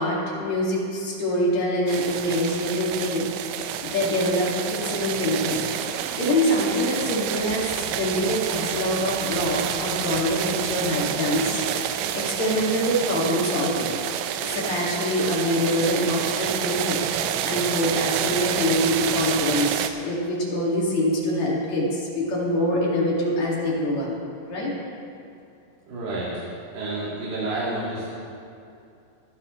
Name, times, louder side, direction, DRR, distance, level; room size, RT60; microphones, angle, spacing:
voice 1, 0.0-3.2 3.5-5.7 6.2-13.9 14.4-17.0 17.4-24.1 24.5-24.7, left 1 dB, 45° left, -5 dB, 2.9 m, -25 dB
Heavy Rain In Tent Catherdral Ranges, 1.9-19.9, right 10 dB, 90° right, 3.1 m, -28 dB
voice 2, 25.8-26.4 26.7-28.1, right 2 dB, 50° right, -9 dB, 3.1 m, -29 dB
23.5 x 11.0 x 3.2 m, 2.5 s
omnidirectional pair, 5.5 m